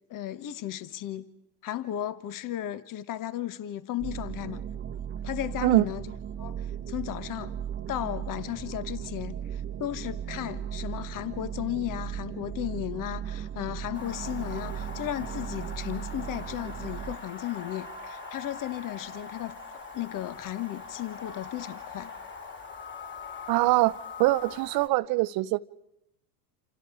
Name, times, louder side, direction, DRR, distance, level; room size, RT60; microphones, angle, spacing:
voice 1, 0.1-1.3 1.6-4.6 5.2-6.0 6.4-7.5 7.9-19.6 19.9-22.1, left 13 dB, 40° left, 1.4 m, -35 dB
Voyage Into Space- A Bass Drone Synth, 4.0-17.1, right 9 dB, 20° right, 1.1 m, -37 dB
sound 1, 13.9-24.9, left 4 dB, 20° left, 3.3 m, -42 dB
voice 2, 23.5-23.9 24.2-25.6, right 20 dB, 45° right, 0.8 m, -23 dB
28.5 x 28.0 x 4.9 m
hypercardioid pair, 100°, 50 cm